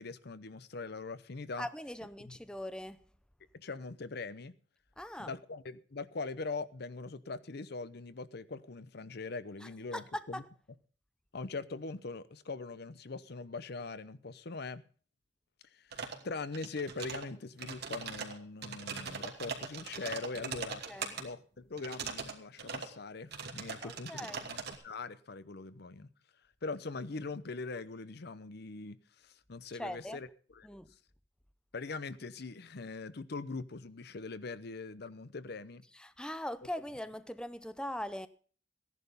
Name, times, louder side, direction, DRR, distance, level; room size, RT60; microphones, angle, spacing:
voice 1, 0.0-1.7 2.3-2.4 3.5-4.5 5.2-10.4 11.3-14.8 15.7-20.8 21.2-24.6 24.8-26.1 26.6-30.3 30.6-30.7 31.7-35.8, left 3 dB, 60° left, 0.8 m, -42 dB
voice 2, 1.6-3.0 5.0-5.3 9.6-10.5 20.9-21.2 23.8-24.5 29.7-30.2 30.6-30.9 35.9-38.3, left 1 dB, 5° left, 0.6 m, -41 dB
sound 1, 15.9-16.2 16.5-17.3 17.6-21.2 21.8-22.3 22.6-22.9 23.3-24.7, right 5 dB, 60° right, 2.6 m, -40 dB
15.5 x 11.0 x 5.4 m
head